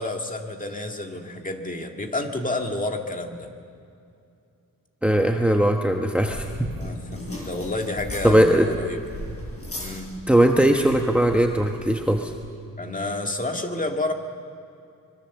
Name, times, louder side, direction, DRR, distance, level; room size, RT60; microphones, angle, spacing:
voice 1, 0.0-3.5 6.7-9.0 9.8-10.1 12.8-14.1, left 2 dB, 25° left, 3 dB, 2.1 m, -30 dB
voice 2, 5.0-6.7 8.2-8.7 10.3-12.3, right 1 dB, 5° right, 3 dB, 1.2 m, -19 dB
sound 1, 6.2-12.4, left 1 dB, 40° left, 7.9 m, -38 dB
25.0 x 22.5 x 7.2 m, 2.6 s
wide cardioid pair, 115°, 35 cm